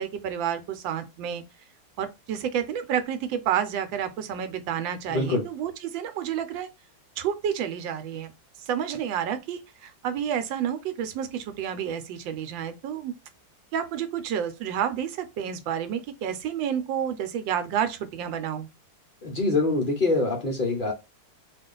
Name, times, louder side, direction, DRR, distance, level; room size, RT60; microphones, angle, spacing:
voice 1, 0.0-1.4 2.0-6.7 7.2-8.3 8.6-13.1 13.7-18.7, right 9 dB, 85° right, 1.3 m, -30 dB
voice 2, 5.1-5.5 19.2-20.9, left 2 dB, 60° left, 0.5 m, -24 dB
2.8 x 2.4 x 3.7 m
omnidirectional pair, 2.0 m